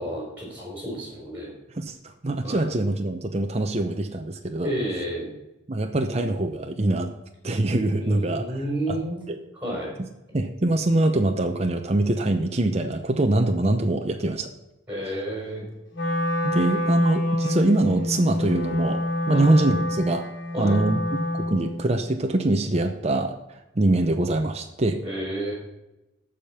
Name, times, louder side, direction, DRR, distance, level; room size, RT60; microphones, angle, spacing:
voice 1, 0.0-1.5 2.4-2.6 4.6-5.3 8.0-9.2 9.6-9.9 14.9-15.7 19.3-19.5 20.5-20.8 25.0-25.5, right 1 dB, 10° right, -3 dB, 4.5 m, -30 dB
voice 2, 1.8-4.7 5.7-7.1 7.4-8.6 8.9-9.0 9.3-9.4 10.0-10.1 10.3-14.5 16.4-19.0 19.3-20.2 20.6-23.3 23.8-25.0, right 2 dB, 35° right, 5 dB, 0.8 m, -23 dB
Wind instrument woodwind instrument, 15.9-21.9, left 1 dB, 70° left, 3.2 m, -27 dB
14.0 x 5.2 x 5.7 m, 0.94 s
head